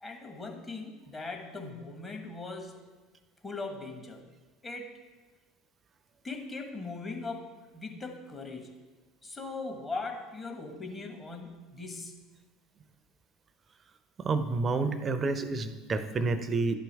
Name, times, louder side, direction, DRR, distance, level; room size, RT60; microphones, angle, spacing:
voice 1, 0.0-2.8 3.4-4.3 4.6-5.0 6.2-8.7 9.2-12.2, left 3 dB, 20° left, 3 dB, 1.3 m, -40 dB
voice 2, 14.2-16.8, right 3 dB, 30° right, 10 dB, 0.6 m, -29 dB
11.5 x 4.5 x 3.4 m, 1.3 s
hypercardioid pair, 75°, 0 cm